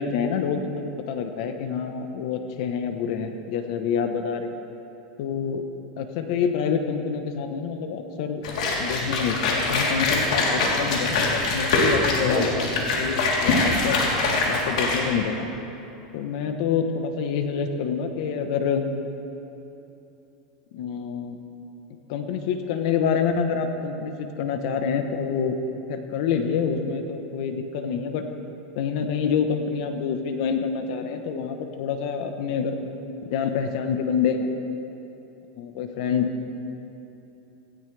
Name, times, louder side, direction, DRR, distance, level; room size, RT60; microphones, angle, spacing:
voice 1, 0.0-4.5 5.2-5.7 6.0-8.4 8.8-14.0 14.5-15.5 16.1-18.9 20.7-21.4 22.1-25.6 25.9-28.3 28.7-32.8 33.2-34.6 35.6-36.3, left 6 dB, 60° left, 7 dB, 1.0 m, -27 dB
sound 1, 8.4-15.0, left 3 dB, 75° left, 3.4 m, -23 dB
18.0 x 16.5 x 3.4 m, 2.9 s
supercardioid pair, 155°, 4 cm